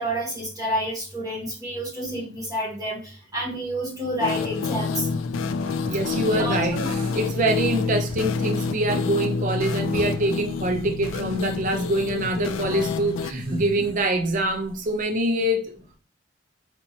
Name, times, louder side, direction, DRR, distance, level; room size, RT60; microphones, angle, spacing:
voice 1, 0.0-5.1 6.1-7.4, right 1 dB, 20° right, 1.1 m, -29 dB
sound 1, 4.2-13.3, left 4 dB, 80° left, 0.3 m, -28 dB
sound 2, 5.8-6.0 6.7-7.8 8.1-8.4 8.8-9.2 9.5-10.4 11.1-11.4 12.1-12.4 13.3-14.4 14.7-14.8, equal, 85° right, 1.5 m, -38 dB
voice 2, 5.9-15.7, right 1 dB, 40° right, 0.5 m, -25 dB
4.3 x 3.0 x 2.7 m
head